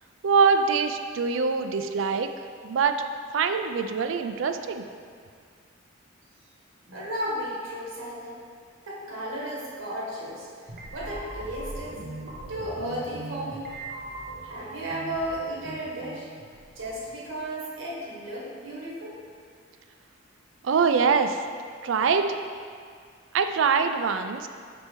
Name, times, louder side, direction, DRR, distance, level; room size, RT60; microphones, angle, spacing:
voice 1, 0.2-2.3 2.6-3.0 3.3-4.8 20.6-21.4 21.8-22.3 23.3-24.5, right 5 dB, 70° right, 8 dB, 0.4 m, -23 dB
voice 2, 6.9-8.4 8.8-10.5 10.9-12.0 12.5-13.6 14.4-16.3 16.7-19.1, right 1 dB, 90° right, -5 dB, 1.5 m, -34 dB
sound 1, 10.7-17.6, right 1 dB, 50° right, 0.7 m, -40 dB
5.2 x 4.3 x 4.4 m, 2.1 s
head